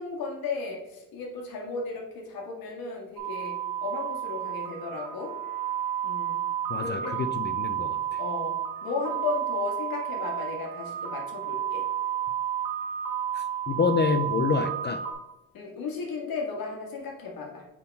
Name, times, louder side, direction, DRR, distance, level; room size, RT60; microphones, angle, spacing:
voice 1, 0.0-5.3 6.0-6.5 6.8-7.2 8.2-8.5 8.8-11.9 15.5-17.7, left 4 dB, 80° left, -1 dB, 1.9 m, -35 dB
sound 1, 3.2-15.1, right 10 dB, 85° right, 1.9 m, -31 dB
voice 2, 6.7-8.0 13.7-15.0, left 5 dB, 30° left, 9 dB, 0.5 m, -27 dB
8.5 x 3.7 x 4.1 m, 0.96 s
cardioid pair, 115°, 35 cm